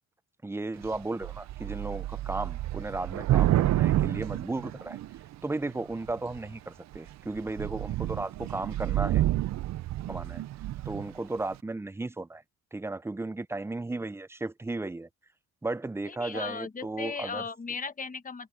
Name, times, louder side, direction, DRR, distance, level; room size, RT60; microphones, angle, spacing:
voice 1, 0.4-5.0 5.4-9.2 10.1-10.4 10.9-12.4 12.7-15.1 15.6-17.5, right 2 dB, 10° right, 0.5 m, -35 dB
Thunder / Rain, 0.8-1.0 1.2-5.3 6.1-6.5 6.9-7.1 7.4-11.1, right 14 dB, 65° right, 0.6 m, -29 dB
voice 2, 16.1-18.5, left 5 dB, 25° left, 1.4 m, -37 dB
cardioid pair, 90°, 30 cm